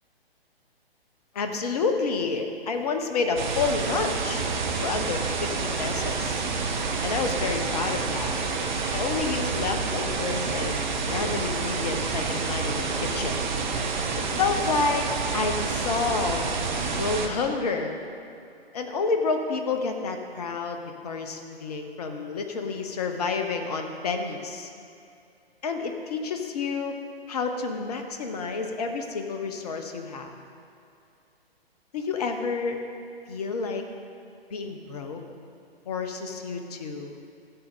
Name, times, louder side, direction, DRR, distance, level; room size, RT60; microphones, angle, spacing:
voice 1, 1.3-4.4 4.8-6.4 7.0-8.4 8.9-13.3 14.2-15.1 15.3-16.5 16.9-17.9 18.7-24.7 25.6-26.9 27.3-30.4 31.9-32.8 33.3-33.8 34.5-35.2 35.9-37.1, left 4 dB, 40° left, 5 dB, 1.1 m, -29 dB
sound 1, 3.4-17.3, right 4 dB, 50° right, 1.1 m, -28 dB
15.5 x 7.7 x 3.8 m, 2.5 s
figure-of-eight pair, 125°, 31 cm